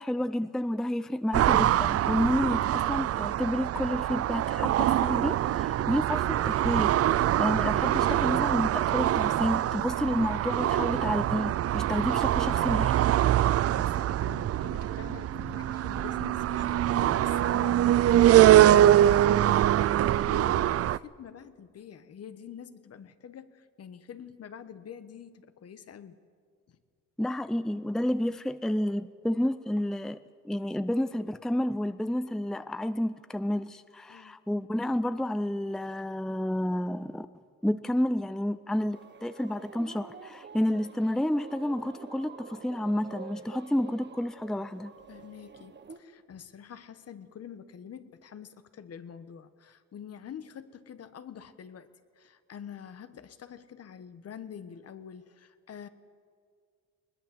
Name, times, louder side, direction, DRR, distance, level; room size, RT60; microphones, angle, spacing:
voice 1, 0.0-12.9 17.6-17.7 27.2-30.2 30.4-37.3 37.6-44.9, left 1 dB, ahead, 13 dB, 0.5 m, -30 dB
sound 1, 1.3-21.0, right 12 dB, 55° right, 0.5 m, -24 dB
sound 2, 6.2-18.4 18.7-18.8 18.9-19.0, right 6 dB, 70° right, 2.4 m, -44 dB
voice 2, 12.2-26.2 26.7-26.8 34.1-34.4 45.1-55.9, left 8 dB, 55° left, 12 dB, 1.3 m, -46 dB
sound 3, 38.9-46.0, right 5 dB, 35° right, 1.4 m, -48 dB
20.5 x 20.5 x 7.8 m, 2.1 s
cardioid pair, 90°, 30 cm